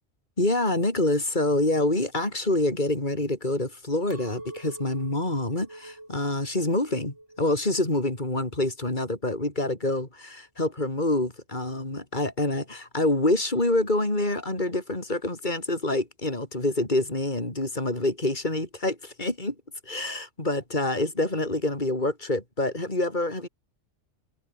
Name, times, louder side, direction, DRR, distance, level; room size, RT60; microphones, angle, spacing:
voice 1, 0.4-19.6 19.8-23.5, left 2 dB, 40° left, 5.2 m, -26 dB
Chink clink, 4.1-9.4, right 1 dB, 80° right, 7.9 m, -47 dB
omnidirectional pair, 1.2 m